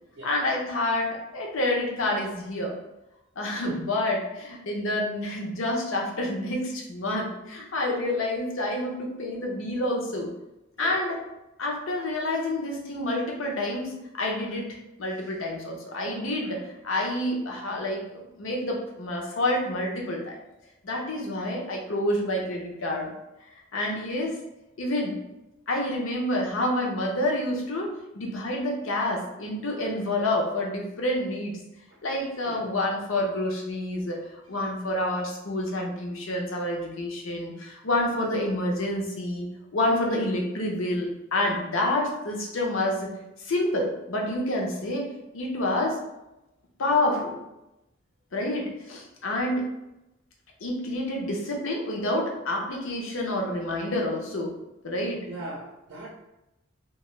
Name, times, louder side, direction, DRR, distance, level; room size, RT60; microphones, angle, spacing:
voice 1, 0.2-2.7 3.4-10.3 10.8-11.2 11.6-18.0 18.4-20.4 20.8-23.1 23.7-24.4 24.8-25.2 25.7-31.6 32.0-43.1 43.4-45.1 45.3-46.0 46.8-47.4 48.3-49.7 50.6-54.5 54.8-55.2, left 1 dB, 70° left, 0 dB, 0.6 m, -28 dB
voice 2, 55.3-56.1, right 2 dB, 55° right, -3 dB, 0.5 m, -39 dB
2.7 x 2.3 x 3.1 m, 0.92 s
head